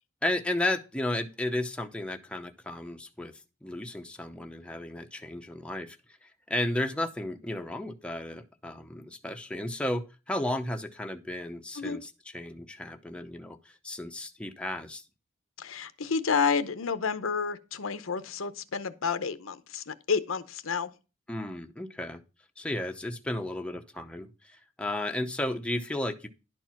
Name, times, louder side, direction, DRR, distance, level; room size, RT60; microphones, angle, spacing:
voice 1, 0.2-3.3 3.6-15.0 21.3-22.2 22.6-26.3, left 1 dB, 5° left, 0.7 m, -34 dB
voice 2, 15.6-20.9, left 5 dB, 85° left, 0.8 m, -30 dB
11.0 x 4.5 x 5.8 m
head